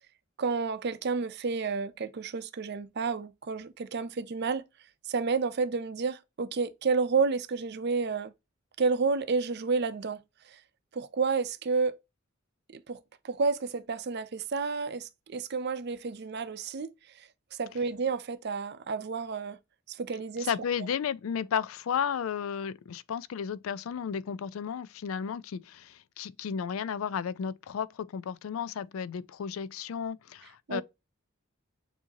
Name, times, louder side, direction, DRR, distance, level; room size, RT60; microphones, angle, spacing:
voice 1, 0.4-4.6 5.1-8.3 8.8-10.2 10.5-10.6 10.9-12.0 12.7-13.0 13.2-16.9 17.2-19.6 19.9-20.5 30.7-30.8, right 4 dB, 55° right, 0.5 m, -30 dB
voice 2, 20.4-30.8, left 7 dB, 80° left, 0.4 m, -33 dB
7.1 x 2.8 x 2.7 m
head